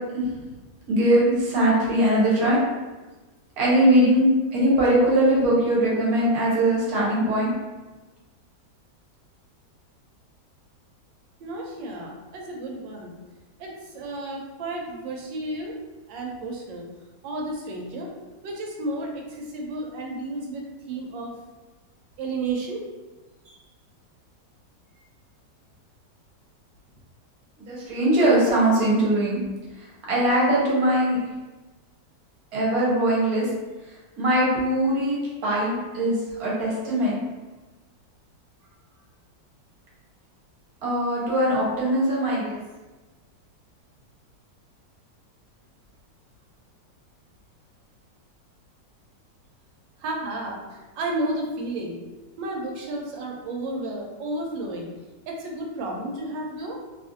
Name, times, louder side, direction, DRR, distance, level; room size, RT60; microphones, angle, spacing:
voice 1, 0.9-2.6 3.6-7.5 27.6-29.4 29.8-31.2 32.5-33.5 34.2-36.1 36.4-37.2 40.8-42.6, right 1 dB, 60° right, -5 dB, 1.2 m, -21 dB
voice 2, 11.4-13.1 13.6-15.7 16.1-16.8 17.2-18.1 18.4-21.3 22.2-22.8 50.0-52.0 52.4-54.9 55.3-56.8, right 2 dB, 85° right, 0 dB, 1.3 m, -32 dB
3.0 x 2.4 x 2.5 m, 1.2 s
omnidirectional pair, 2.0 m